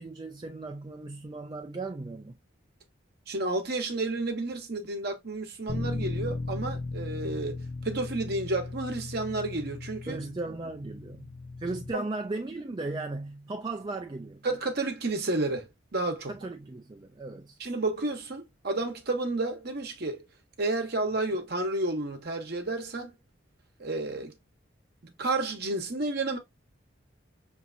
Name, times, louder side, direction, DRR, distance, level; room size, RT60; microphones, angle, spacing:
voice 1, 0.0-2.4 10.1-14.5 16.3-17.6, right 2 dB, 25° right, 0.3 m, -37 dB
voice 2, 3.3-10.2 11.9-12.0 14.4-16.3 17.6-20.2 20.6-23.1 23.8-24.3 25.0-26.4, right 2 dB, 55° right, 0.9 m, -31 dB
Bass guitar, 5.7-11.9, left 3 dB, 45° left, 0.5 m, -37 dB
5.8 x 2.7 x 2.5 m
head